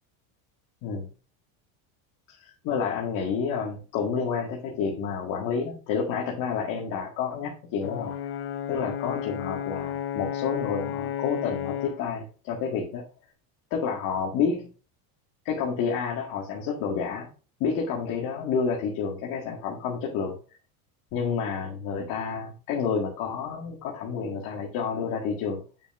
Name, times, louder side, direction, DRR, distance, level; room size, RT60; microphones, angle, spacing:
voice 1, 2.3-8.1 8.7-13.0 13.7-14.7 15.5-17.3 17.6-20.4 21.1-25.6, left 6 dB, 50° left, -1 dB, 1.9 m, -29 dB
Brass instrument, 7.8-12.1, left 9 dB, 35° left, 0.6 m, -32 dB
9.1 x 6.7 x 2.5 m, 0.36 s
cardioid pair, 150°, 42 cm